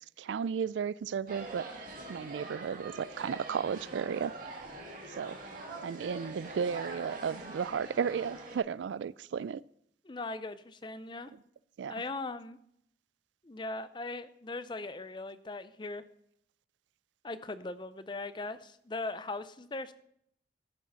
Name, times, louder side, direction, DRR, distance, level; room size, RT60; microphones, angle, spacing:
voice 1, 0.2-1.7 2.1-4.3 5.0-5.4 5.8-9.6 11.8-11.9, right 7 dB, 80° right, 21 dB, 0.3 m, -34 dB
sound 1, 1.3-8.6, right 2 dB, 50° right, 2.1 m, -44 dB
voice 2, 10.0-11.3 11.9-12.6 13.4-16.0 17.2-19.9, left 2 dB, 25° left, 14 dB, 0.5 m, -39 dB
14.0 x 6.3 x 5.7 m, 0.71 s
head